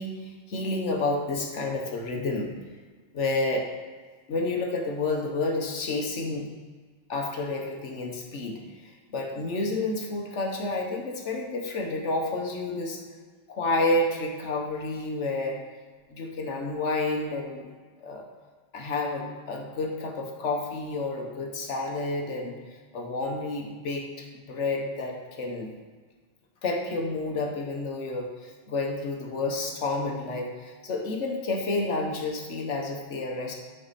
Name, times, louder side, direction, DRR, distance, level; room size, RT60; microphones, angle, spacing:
voice 1, 0.0-2.5 3.1-3.7 4.3-6.5 7.1-13.0 13.5-15.6 16.1-17.7 18.0-18.2 18.7-25.7 26.6-33.5, left 2 dB, 90° left, 1 dB, 1.4 m, -30 dB
10.0 x 5.0 x 4.1 m, 1.5 s
omnidirectional pair, 1.2 m